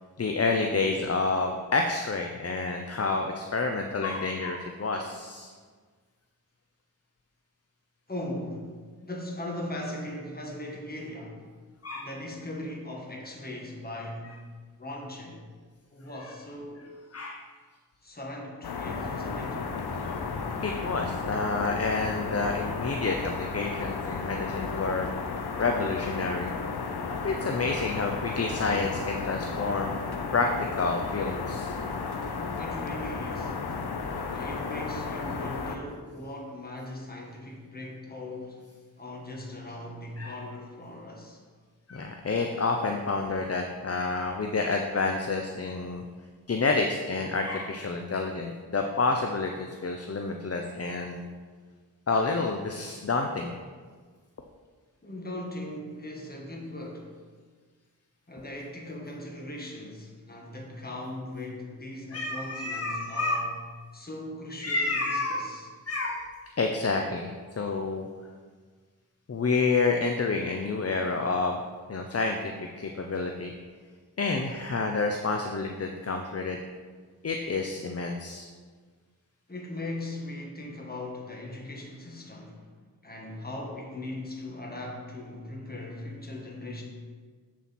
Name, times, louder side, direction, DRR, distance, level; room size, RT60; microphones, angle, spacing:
voice 1, 0.2-5.5 11.8-12.1 17.1-17.4 20.0-20.2 20.6-25.1 25.6-26.5 27.2-29.9 30.3-30.5 30.8-31.8 40.2-40.3 41.9-46.0 46.5-51.3 52.1-53.5 62.1-63.4 64.6-65.5 65.9-66.3 66.6-68.1 69.3-71.6 71.9-73.5 74.2-76.6 77.2-78.5, left 3 dB, 40° left, 3 dB, 0.6 m, -29 dB
voice 2, 8.1-11.5 12.0-14.4 14.8-15.4 15.9-16.9 18.0-19.7 32.6-33.6 34.3-38.6 39.0-41.4 55.0-57.1 58.3-63.5 63.9-65.7 79.5-82.6 83.0-86.8, left 1 dB, 25° left, -1 dB, 1.6 m, -39 dB
sound 1, 18.6-35.8, left 4 dB, 85° left, 0.8 m, -33 dB
7.6 x 7.1 x 4.3 m, 1.5 s
wide cardioid pair, 75°, 37 cm